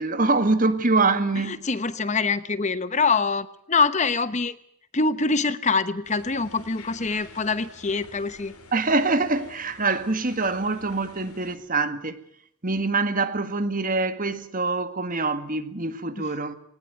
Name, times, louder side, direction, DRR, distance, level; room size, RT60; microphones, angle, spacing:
voice 1, 0.0-1.7 8.7-12.2 12.6-16.5, right 3 dB, 40° right, 1.8 m, -24 dB
voice 2, 1.5-4.5 4.9-8.5 16.2-16.3, left 4 dB, 30° left, 1.0 m, -24 dB
sound 1, 6.0-11.6, left 3 dB, 80° left, 4.4 m, -48 dB
20.0 x 19.0 x 9.4 m
head